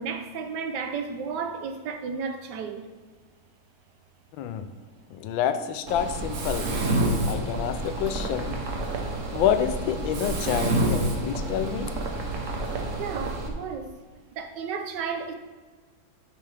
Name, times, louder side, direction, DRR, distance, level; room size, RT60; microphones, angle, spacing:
voice 1, 0.0-2.9 13.0-14.0 14.3-15.3, right 5 dB, 70° right, 1.2 m, -33 dB
voice 2, 4.4-4.7 5.1-6.7 7.2-8.6 9.3-11.9, left 9 dB, 85° left, 1.3 m, -28 dB
Mechanisms, 5.9-13.5, right 1 dB, 50° right, 1.1 m, -28 dB
9.0 x 6.2 x 3.3 m
omnidirectional pair, 2.1 m